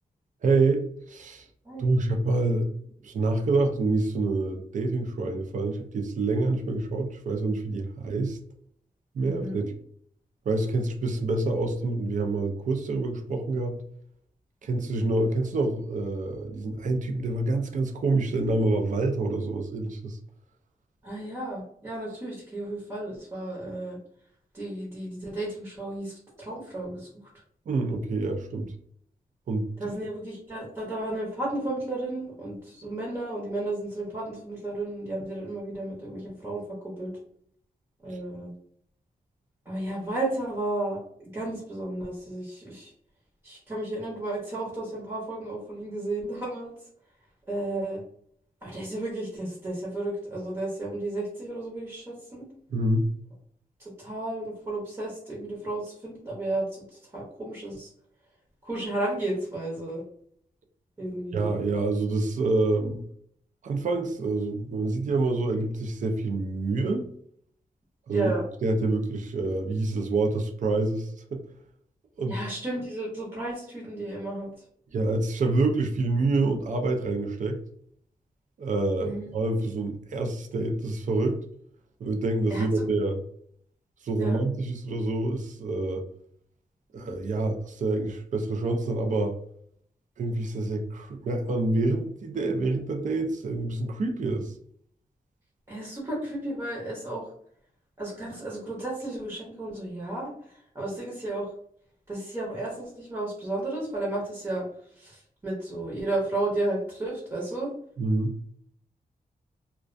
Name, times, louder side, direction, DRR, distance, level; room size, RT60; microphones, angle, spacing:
voice 1, 0.4-1.5 1.8-2.7 3.0-8.4 9.1-9.6 10.5-13.8 14.6-20.2 27.7-28.7 29.5-29.9 38.1-38.2 52.7-53.1 61.3-63.0 63.6-67.1 68.1-68.3 68.6-71.4 72.2-72.4 74.9-77.6 78.6-81.4 82.0-83.2 84.0-86.0 86.9-89.3 90.2-94.5 108.0-108.3, right 2 dB, 55° right, 4 dB, 0.4 m, -27 dB
voice 2, 1.6-2.1 9.2-9.6 21.0-24.0 24.5-27.1 29.8-36.6 37.0-37.1 38.0-38.5 39.7-41.0 41.3-42.9 43.4-46.7 47.5-48.0 48.6-52.4 53.8-57.9 58.6-60.0 61.0-61.5 68.1-68.4 72.3-74.5 79.0-79.3 82.5-82.7 84.2-84.4 95.7-97.3 98.0-100.3 100.7-101.5 102.1-104.6 105.0-107.7, right 2 dB, 20° right, -4 dB, 0.7 m, -33 dB
2.3 x 2.2 x 2.4 m, 0.66 s
wide cardioid pair, 135°, 16 cm